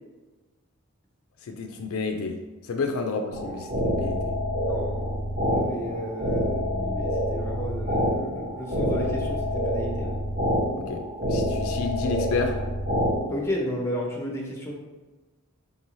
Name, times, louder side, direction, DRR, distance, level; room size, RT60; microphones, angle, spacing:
voice 1, 1.5-2.4 2.7-4.3 10.8-11.0 11.3-12.6, left 3 dB, 65° left, 4 dB, 0.3 m, -30 dB
sound 1, 3.3-13.1, equal, 40° right, 1.2 m, -27 dB
voice 2, 4.6-10.2 13.3-14.7, left 1 dB, 10° left, -1 dB, 0.6 m, -33 dB
3.9 x 2.6 x 3.0 m, 1.2 s
head